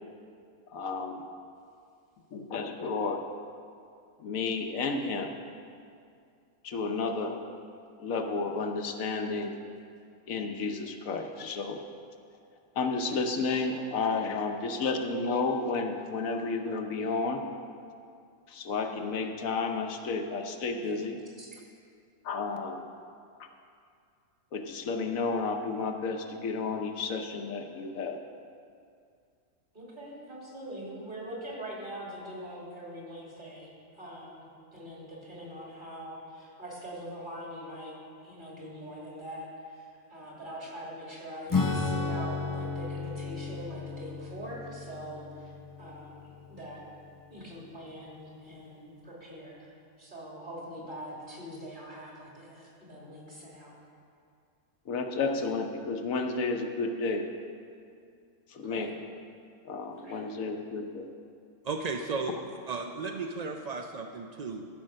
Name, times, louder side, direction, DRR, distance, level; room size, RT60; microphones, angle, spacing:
voice 1, 0.7-1.2 2.3-3.2 4.2-5.3 6.6-7.4 8.0-9.6 10.3-11.8 12.8-17.4 18.5-21.2 22.2-22.8 23.4-23.5 24.5-28.2 54.9-57.3 58.5-58.9 59.6-61.1, left 4 dB, 75° left, 4 dB, 1.2 m, -31 dB
voice 2, 29.7-33.7 34.0-45.5 45.8-46.8 47.3-49.7 50.0-53.7 58.6-58.9 60.0-60.2, equal, 35° right, -5 dB, 2.9 m, -43 dB
Acoustic guitar / Strum, 41.5-47.4, left 4 dB, 30° left, 0.3 m, -34 dB
voice 3, 61.6-62.4 62.7-64.7, right 4 dB, 70° right, 4 dB, 0.3 m, -34 dB
14.0 x 5.5 x 6.4 m, 2.3 s
omnidirectional pair, 1.4 m